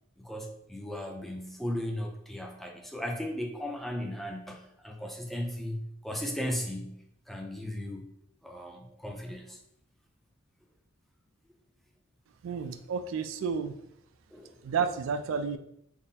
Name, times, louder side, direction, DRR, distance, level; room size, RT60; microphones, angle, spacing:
voice 1, 0.2-8.1 8.4-9.6 14.3-14.6, left 1 dB, ahead, 1 dB, 0.4 m, -36 dB
voice 2, 12.4-13.7 14.6-15.6, right 6 dB, 75° right, 10 dB, 0.3 m, -31 dB
3.6 x 2.0 x 4.0 m, 0.76 s
head